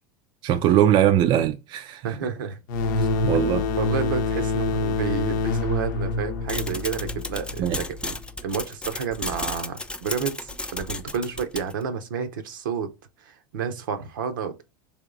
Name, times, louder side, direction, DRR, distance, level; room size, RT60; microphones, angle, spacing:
voice 1, 0.4-2.1 3.2-3.7 7.6-7.8, right 11 dB, 50° right, 0.4 m, -20 dB
voice 2, 2.0-2.6 3.0-3.1 3.8-8.1 8.4-12.9 13.2-14.6, right 7 dB, 80° right, 0.8 m, -30 dB
sound 1, 2.7-8.1, left 3 dB, 70° left, 0.6 m, -26 dB
sound 2, 6.5-11.8, left 2 dB, 10° left, 0.5 m, -33 dB
3.5 x 2.9 x 3.8 m
hypercardioid pair, 90°, 11 cm